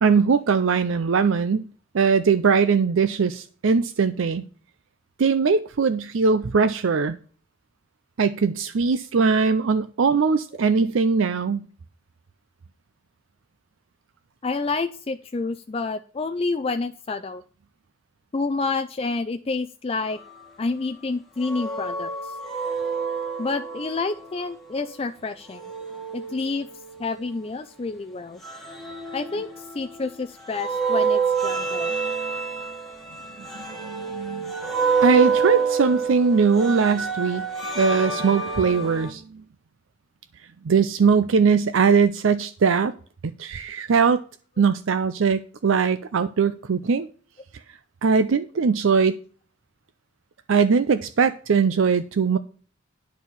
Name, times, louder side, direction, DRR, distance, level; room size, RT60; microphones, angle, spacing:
voice 1, 0.0-1.7 1.9-4.4 5.2-7.2 8.2-11.6 33.8-34.4 35.0-37.4 37.8-39.4 40.6-42.9 43.2-44.2 44.6-47.1 48.0-49.2 50.5-52.4, right 5 dB, 70° right, 0.5 m, -20 dB
voice 2, 14.4-17.4 18.3-20.2 20.6-22.3 23.4-25.6 26.1-26.7 27.0-28.4 29.1-31.9, left 3 dB, 30° left, 0.4 m, -29 dB
sound 1, 21.4-24.3 25.5-27.3 28.4-30.1 30.5-39.1, right 5 dB, ahead, 1.4 m, -27 dB
10.0 x 4.5 x 6.9 m
head